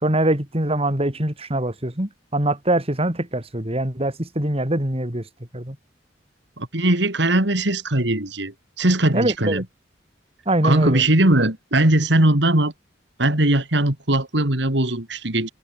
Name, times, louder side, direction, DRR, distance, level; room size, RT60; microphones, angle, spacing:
voice 1, 0.0-5.2 5.5-5.8 9.1-9.6 10.5-11.0, right 1 dB, 35° right, 3.6 m, -23 dB
voice 2, 6.6-9.6 10.6-12.7 13.2-15.5, right 1 dB, 70° right, 3.5 m, -20 dB
head